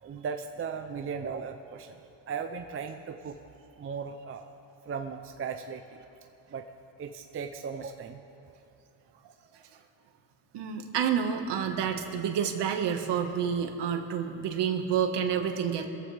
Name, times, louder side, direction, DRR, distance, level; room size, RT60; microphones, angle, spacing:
voice 1, 0.0-2.0 2.3-3.4 3.8-4.5 4.9-6.0 6.5-6.7 7.0-8.2, right 6 dB, 25° right, 5 dB, 0.6 m, -37 dB
voice 2, 10.5-15.9, right 8 dB, 55° right, 5 dB, 1.7 m, -29 dB
25.5 x 14.5 x 3.5 m, 2.8 s
cardioid pair, 110°, 50 cm